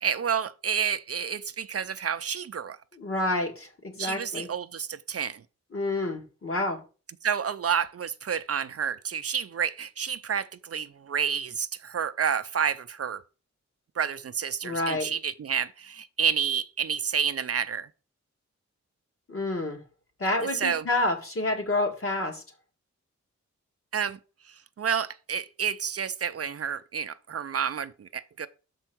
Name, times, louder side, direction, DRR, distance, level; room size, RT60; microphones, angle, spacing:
voice 1, 0.0-2.8 4.0-5.4 7.2-13.2 14.0-17.9 20.5-20.9 23.9-24.2 24.5-28.5, right 7 dB, 55° right, 0.5 m, -29 dB
voice 2, 2.9-4.5 5.7-6.8 14.6-15.1 19.3-19.8 20.2-22.4, left 2 dB, 50° left, 1.9 m, -28 dB
6.7 x 4.5 x 6.0 m
wide cardioid pair, 145°, 29 cm